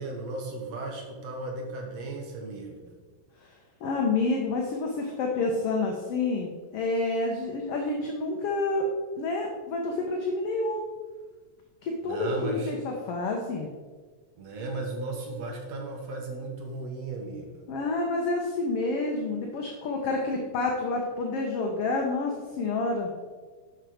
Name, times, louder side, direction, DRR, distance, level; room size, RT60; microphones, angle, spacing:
voice 1, 0.0-3.0 12.0-12.7 14.4-17.7, right 2 dB, 65° right, 1 dB, 2.3 m, -35 dB
voice 2, 3.8-8.9 9.2-10.8 11.8-13.7 17.7-23.1, left 3 dB, 65° left, 1 dB, 1.6 m, -29 dB
7.7 x 6.4 x 4.9 m, 1.5 s
omnidirectional pair, 3.4 m